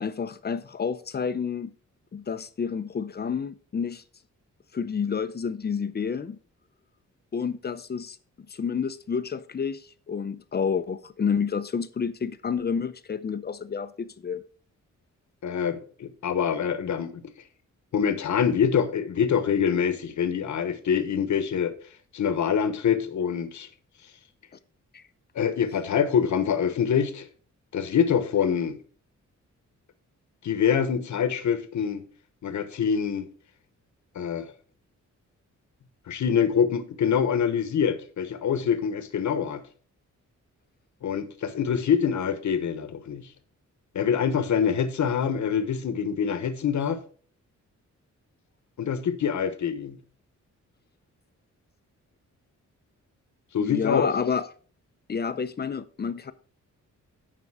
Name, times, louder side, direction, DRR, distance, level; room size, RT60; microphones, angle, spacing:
voice 1, 0.0-1.7 2.1-4.0 4.7-6.4 7.3-14.4 24.9-25.0 53.6-54.5 55.1-56.3, left 6 dB, 35° left, 0.6 m, -29 dB
voice 2, 15.4-17.1 17.9-21.7 22.1-23.7 25.3-27.3 27.7-28.8 30.4-32.0 32.4-33.3 34.1-34.5 36.1-39.6 41.0-43.3 43.9-47.0 48.8-50.0 53.5-54.1, left 7 dB, 65° left, 1.1 m, -25 dB
9.9 x 5.3 x 4.8 m
wide cardioid pair, 120°, 31 cm